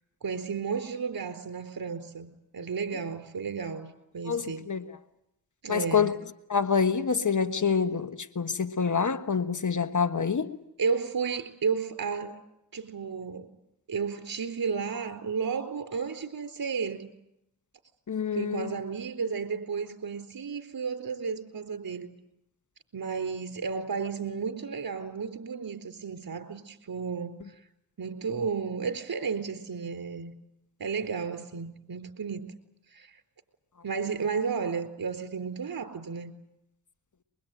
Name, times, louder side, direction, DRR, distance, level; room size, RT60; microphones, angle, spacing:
voice 1, 0.2-4.6 5.6-6.2 10.8-12.4 12.7-13.5 13.9-17.1 18.3-22.1 22.9-27.4 28.0-30.3 30.8-32.5 32.9-33.1 33.8-36.3, right 5 dB, 55° right, 4.1 m, -33 dB
voice 2, 4.3-4.8 5.7-6.2 6.5-10.6 18.1-18.7, left 6 dB, 45° left, 1.4 m, -27 dB
23.0 x 22.5 x 9.2 m
cardioid pair, 50°, 41 cm